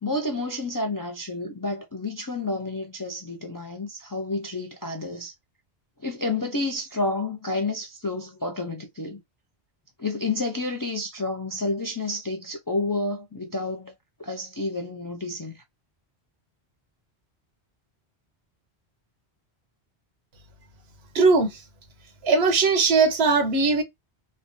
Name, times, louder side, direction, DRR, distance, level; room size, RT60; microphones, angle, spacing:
voice 1, 0.0-5.3 6.0-9.2 10.0-13.9 14.2-15.6, left 2 dB, 35° left, 0.3 m, -30 dB
voice 2, 21.1-21.5 22.2-23.8, right 4 dB, 75° right, 1.0 m, -19 dB
3.2 x 2.2 x 2.5 m
omnidirectional pair, 1.1 m